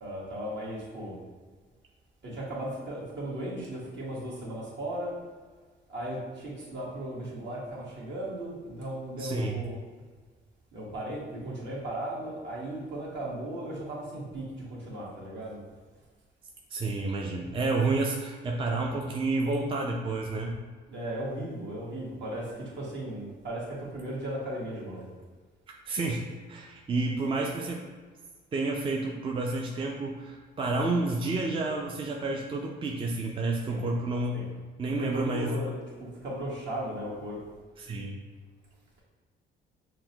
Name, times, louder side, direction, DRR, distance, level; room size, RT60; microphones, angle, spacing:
voice 1, 0.0-1.2 2.2-5.1 5.9-9.8 10.7-15.6 20.9-25.1 33.7-33.8 34.3-34.5 35.0-37.4, right 1 dB, 60° right, -5 dB, 1.3 m, -36 dB
voice 2, 9.2-9.6 16.7-20.6 25.9-27.9 28.5-34.4 34.8-35.6 37.8-38.2, right 3 dB, 25° right, 0 dB, 0.4 m, -30 dB
5.8 x 2.1 x 2.8 m, 1.4 s
cardioid pair, 90°, 20 cm